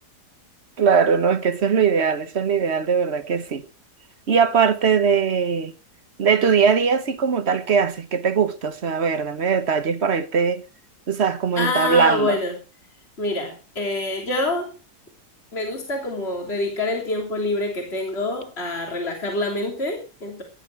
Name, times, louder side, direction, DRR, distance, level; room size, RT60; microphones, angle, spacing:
voice 1, 0.8-3.6 4.3-5.7 6.2-10.6 11.1-12.4, right 6 dB, 45° right, 1.3 m, -20 dB
voice 2, 11.6-12.5 13.2-14.7 15.5-20.4, left 2 dB, 40° left, 3.5 m, -26 dB
17.5 x 11.0 x 4.7 m
omnidirectional pair, 1.7 m